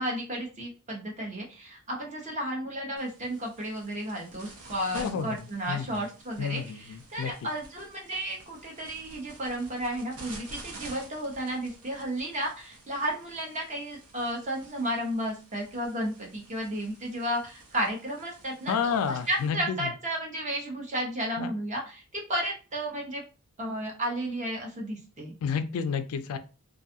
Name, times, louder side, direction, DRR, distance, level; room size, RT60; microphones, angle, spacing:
voice 1, 0.0-23.2 23.6-25.3, right 1 dB, 35° right, 0 dB, 0.8 m, -33 dB
sound 1, 3.0-19.5, right 2 dB, 85° right, 0.7 m, -50 dB
voice 2, 4.9-5.4 5.7-6.0 6.4-7.3 18.7-19.9 21.4-21.5 25.4-26.4, left 6 dB, 75° left, 10 dB, 0.3 m, -30 dB
2.5 x 2.3 x 2.6 m, 0.34 s
head